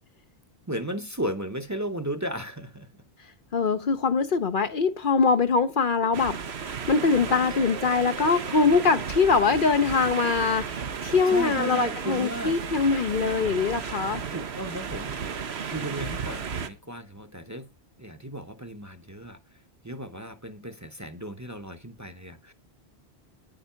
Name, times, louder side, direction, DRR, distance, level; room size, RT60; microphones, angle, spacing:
voice 1, 0.7-2.9 11.3-12.5 14.3-17.7 18.0-19.4 19.8-22.5, right 1 dB, 15° right, 0.9 m, -35 dB
voice 2, 3.5-14.2, left 4 dB, 55° left, 0.9 m, -23 dB
sound 1, 6.1-16.7, right 6 dB, 80° right, 1.3 m, -34 dB
Mallet percussion, 7.5-10.0, right 5 dB, 60° right, 1.8 m, -47 dB
10.0 x 8.9 x 5.7 m
omnidirectional pair, 1.1 m